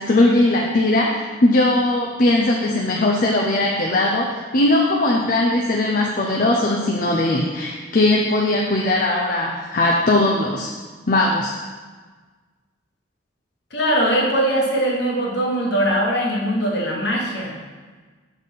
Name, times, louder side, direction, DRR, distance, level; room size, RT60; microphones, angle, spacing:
voice 1, 0.0-10.7 11.1-11.5, left 2 dB, 45° left, -1 dB, 0.5 m, -19 dB
voice 2, 13.7-17.5, right 1 dB, 60° left, -2 dB, 1.3 m, -21 dB
6.9 x 4.1 x 5.3 m, 1.4 s
head